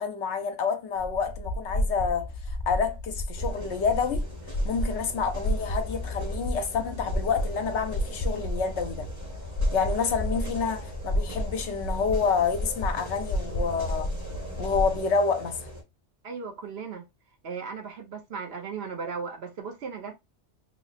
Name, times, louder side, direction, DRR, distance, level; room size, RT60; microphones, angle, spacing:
voice 1, 0.0-2.3 2.7-4.2 4.6-9.1 9.7-14.1 14.6-15.7, left 5 dB, 70° left, 0.9 m, -28 dB
sound 1, 1.0-15.0, equal, 55° left, 0.3 m, -31 dB
sound 2, 3.3-15.8, equal, 15° right, 0.8 m, -42 dB
voice 2, 16.2-17.0 17.4-20.1, right 5 dB, 60° right, 0.9 m, -36 dB
3.1 x 2.0 x 3.9 m
omnidirectional pair, 1.2 m